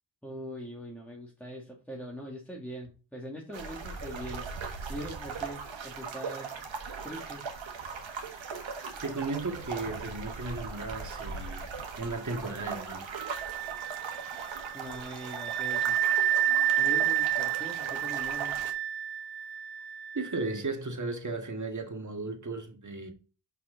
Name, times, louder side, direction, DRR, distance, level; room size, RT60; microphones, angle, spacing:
voice 1, 0.2-4.5 4.9-6.5 7.0-7.4 14.7-16.0 16.8-18.6, equal, 5° left, 2.2 m, -42 dB
sound 1, 3.5-18.7, right 5 dB, 90° right, 1.4 m, -39 dB
voice 2, 9.0-11.7 12.0-13.1 20.1-23.1, right 3 dB, 40° right, 2.0 m, -35 dB
Wind instrument woodwind instrument, 13.1-20.5, right 11 dB, 60° right, 0.5 m, -30 dB
5.7 x 5.6 x 3.9 m
cardioid pair, 55°, 45 cm